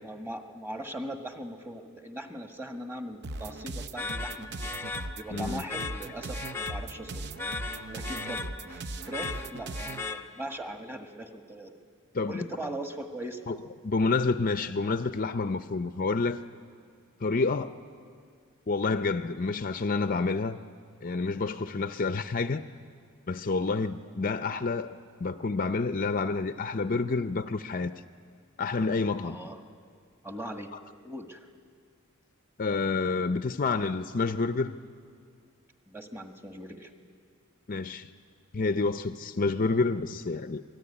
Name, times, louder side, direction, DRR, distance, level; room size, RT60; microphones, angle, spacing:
voice 1, 0.0-4.5 5.1-7.3 7.9-11.7 12.3-13.4 24.0-24.3 29.2-29.6 30.2-30.7 31.0-31.5 35.9-36.9, right 1 dB, 10° right, 1.7 m, -40 dB
sound 1, 3.2-10.0, right 2 dB, 50° right, 0.7 m, -39 dB
sound 2, 3.9-10.7, left 4 dB, 10° left, 0.8 m, -38 dB
voice 2, 5.3-5.6 12.1-12.5 13.5-13.6 13.8-16.4 17.2-17.7 18.7-20.6 21.0-22.7 23.3-27.9 28.6-29.4 32.6-34.8 37.7-38.1 38.5-40.6, left 3 dB, 40° left, 0.6 m, -28 dB
27.0 x 20.0 x 9.9 m
head